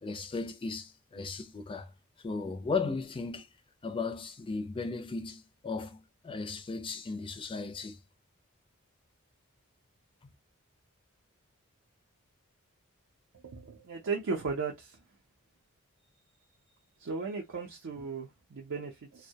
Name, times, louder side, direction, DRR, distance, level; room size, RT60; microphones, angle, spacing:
voice 1, 0.0-1.9 2.2-3.5 3.8-8.0 10.2-10.3, left 4 dB, 25° left, 0.4 m, -36 dB
voice 2, 13.4-15.0 17.0-19.3, right 4 dB, 65° right, 0.5 m, -36 dB
2.2 x 2.1 x 2.7 m
head